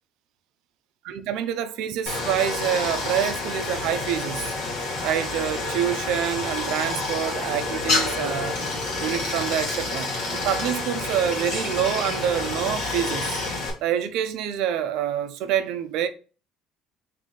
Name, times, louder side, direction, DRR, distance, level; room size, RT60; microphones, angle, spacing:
voice 1, 1.0-4.6 5.0-8.6 9.0-13.4 13.8-16.1, right 10 dB, 75° right, 0.5 m, -27 dB
Stream, 2.1-13.7, left 3 dB, 70° left, 1.4 m, -28 dB
3.7 x 2.7 x 3.9 m
supercardioid pair, 85°, 0 cm